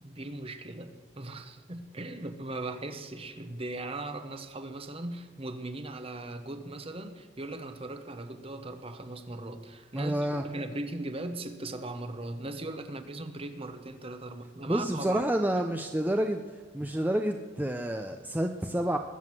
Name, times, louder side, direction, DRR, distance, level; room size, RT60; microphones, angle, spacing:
voice 1, 0.0-15.2, right 2 dB, 30° right, 1.0 m, -39 dB
voice 2, 9.9-10.4 14.7-16.4 16.7-19.0, right 1 dB, 10° right, 0.6 m, -29 dB
20.5 x 8.0 x 7.6 m
head